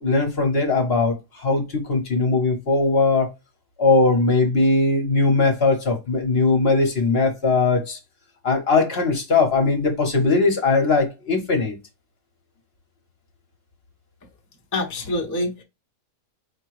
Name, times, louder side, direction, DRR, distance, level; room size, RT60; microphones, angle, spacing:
voice 1, 0.0-3.3 3.8-8.0 8.4-11.7, left 3 dB, 45° left, 1.1 m, -20 dB
voice 2, 14.7-15.6, left 1 dB, 15° left, 0.7 m, -26 dB
5.0 x 2.2 x 4.6 m
omnidirectional pair, 1.5 m